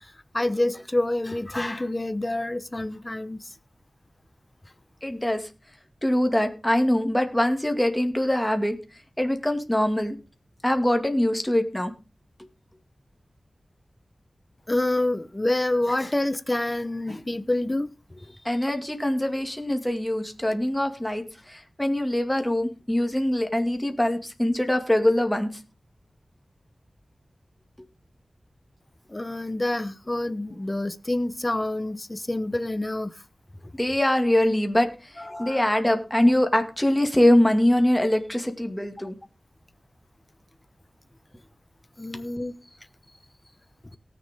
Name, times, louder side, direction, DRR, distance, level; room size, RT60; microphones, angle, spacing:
voice 1, 0.0-3.5 14.7-18.2 29.1-33.1 35.2-35.7 42.0-42.6, left 1 dB, 25° left, 0.9 m, -27 dB
voice 2, 5.0-5.5 6.0-8.8 9.2-10.2 10.6-11.9 18.4-25.5 33.8-39.2, left 1 dB, 10° left, 2.1 m, -23 dB
18.5 x 7.0 x 3.6 m
wide cardioid pair, 65°, 0 cm